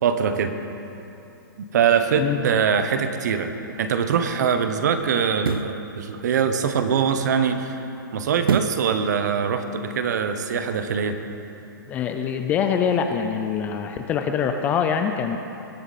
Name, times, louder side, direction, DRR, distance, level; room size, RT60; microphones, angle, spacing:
voice 1, 0.0-0.5 1.6-3.5 3.8-7.8 8.1-11.1, right 7 dB, 50° right, 8 dB, 1.0 m, -23 dB
sound 1, 3.6-3.7 5.3-5.8 8.4-8.9 9.4-9.5, right 7 dB, 85° right, 0.5 m, -25 dB
voice 2, 11.9-15.4, left 7 dB, 15° left, 6 dB, 0.4 m, -24 dB
20.0 x 9.8 x 4.2 m, 2.9 s
hypercardioid pair, 160°, 12 cm